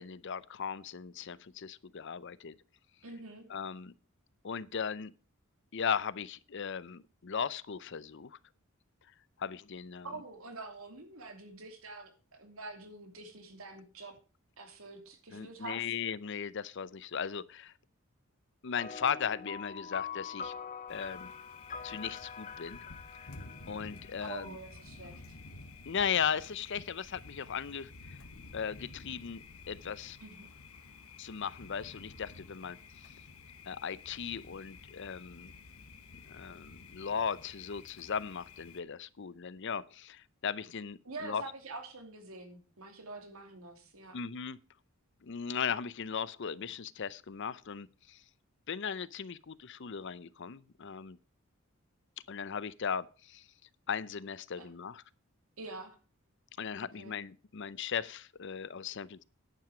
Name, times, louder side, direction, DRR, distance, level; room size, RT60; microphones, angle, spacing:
voice 1, 0.0-2.5 3.5-3.9 4.4-5.1 5.7-8.4 9.4-10.1 15.3-17.7 18.6-20.5 20.9-21.3 21.8-22.8 23.7-24.6 25.9-28.2 28.5-30.2 31.2-32.8 33.0-33.1 33.7-35.5 36.3-41.4 44.1-44.6 45.2-48.2 48.7-51.2 52.3-53.4 53.9-55.0 56.6-59.2, left 7 dB, 55° left, 0.6 m, -37 dB
voice 2, 3.0-3.4 10.0-14.1 14.6-15.9 24.2-25.4 30.2-30.5 41.0-44.2 54.6-54.7 55.6-56.0 56.8-57.2, right 3 dB, 75° right, 2.9 m, -46 dB
sound 1, 18.8-24.6, left 6 dB, 35° left, 0.9 m, -44 dB
Thunder, 20.9-38.8, left 3 dB, 85° left, 1.4 m, -51 dB
10.5 x 9.0 x 5.0 m
head